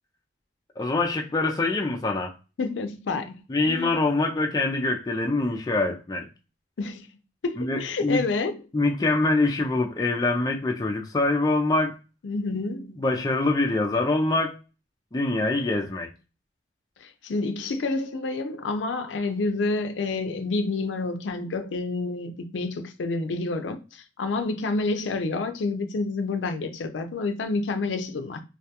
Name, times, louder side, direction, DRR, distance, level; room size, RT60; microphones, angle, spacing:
voice 1, 0.8-2.3 3.5-6.3 7.6-8.2 8.7-12.0 13.0-14.6 15.1-16.1, left 2 dB, 20° left, 0.3 m, -24 dB
voice 2, 2.6-3.9 6.8-7.1 7.4-8.6 12.2-13.0 17.0-28.4, left 3 dB, 85° left, 0.4 m, -29 dB
2.2 x 2.2 x 2.8 m
head